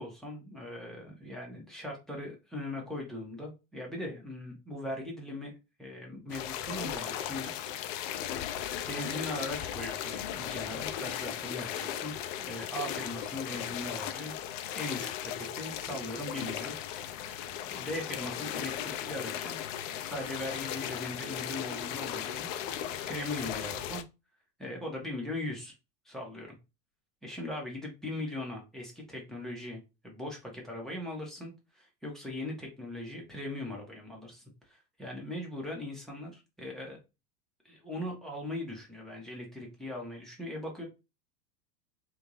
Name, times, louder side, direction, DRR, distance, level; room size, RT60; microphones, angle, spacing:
voice 1, 0.0-5.5 5.8-8.0 8.9-14.3 14.7-16.8 17.1-19.6 20.0-22.5 22.8-24.0 24.6-25.7 26.0-26.6 27.2-29.8 30.0-37.0 37.6-40.8, left 1 dB, ahead, -2 dB, 1.2 m, -40 dB
River Wandle - Shallow River Medium Flow, 6.3-24.0, left 10 dB, 50° left, 0.6 m, -37 dB
3.4 x 2.7 x 3.1 m, 0.26 s
hypercardioid pair, 120°, 48 cm